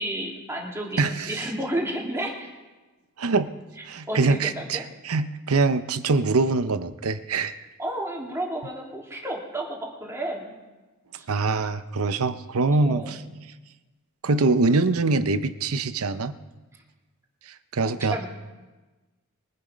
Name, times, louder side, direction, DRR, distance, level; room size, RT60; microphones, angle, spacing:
voice 1, 0.0-2.5 4.1-4.8 7.8-10.5 12.8-13.1 17.8-18.3, right 1 dB, 10° right, -2 dB, 3.0 m, -31 dB
voice 2, 1.0-1.5 3.2-3.5 3.9-7.5 11.3-13.2 14.2-16.4 17.7-18.3, right 3 dB, 75° right, 12 dB, 0.8 m, -24 dB
23.0 x 8.4 x 5.2 m, 1.2 s
head